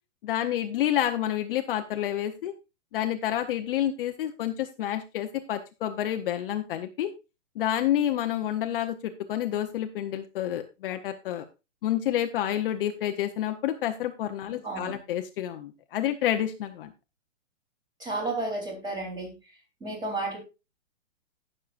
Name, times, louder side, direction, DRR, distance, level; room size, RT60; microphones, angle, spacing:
voice 1, 0.2-2.5 2.9-7.1 7.6-11.4 11.8-16.9, left 11 dB, 45° left, 6 dB, 0.9 m, -29 dB
voice 2, 14.6-15.0 18.0-19.3 19.8-20.4, right 2 dB, 10° right, 1 dB, 3.3 m, -32 dB
18.5 x 6.6 x 2.5 m, 0.27 s
hypercardioid pair, 145°, 38 cm